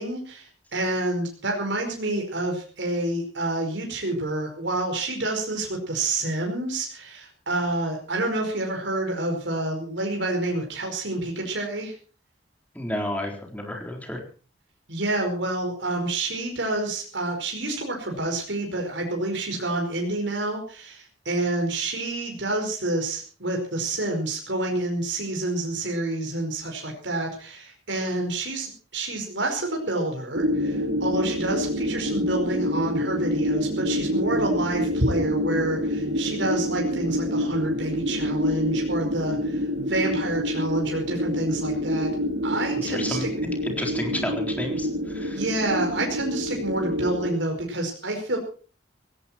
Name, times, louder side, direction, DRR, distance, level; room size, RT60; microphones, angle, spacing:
voice 1, 0.0-11.9 14.9-42.1 42.4-43.5 45.3-48.4, right 2 dB, 65° right, 1 dB, 5.1 m, -28 dB
voice 2, 12.8-14.2 42.8-43.3 43.6-45.4, left 1 dB, 10° left, 2 dB, 4.0 m, -31 dB
sound 1, 30.3-47.3, equal, 85° right, 2.7 m, -27 dB
17.5 x 17.0 x 4.5 m, 0.39 s
head